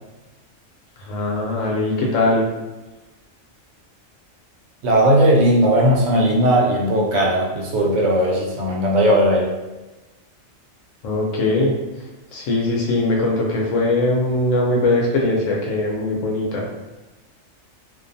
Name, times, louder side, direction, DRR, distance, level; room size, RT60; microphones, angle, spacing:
voice 1, 1.1-2.5 11.0-11.7 12.3-16.7, left 2 dB, 75° left, -1 dB, 1.0 m, -20 dB
voice 2, 4.8-9.5, right 1 dB, 70° right, -1 dB, 0.9 m, -17 dB
2.5 x 2.2 x 2.6 m, 1.1 s
omnidirectional pair, 1.4 m